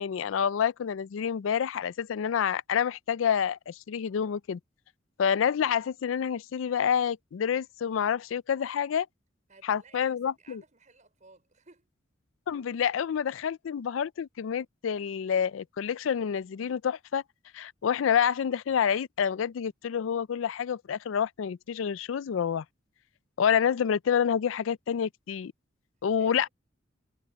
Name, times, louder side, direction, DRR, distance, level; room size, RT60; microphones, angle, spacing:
voice 1, 0.0-4.6 5.2-9.1 9.7-10.6 12.5-17.2 17.5-22.6 23.4-25.5 26.0-26.5, left 8 dB, 90° left, 0.4 m, -28 dB
voice 2, 9.5-11.9 26.2-26.5, right 3 dB, 40° right, 5.3 m, -57 dB
head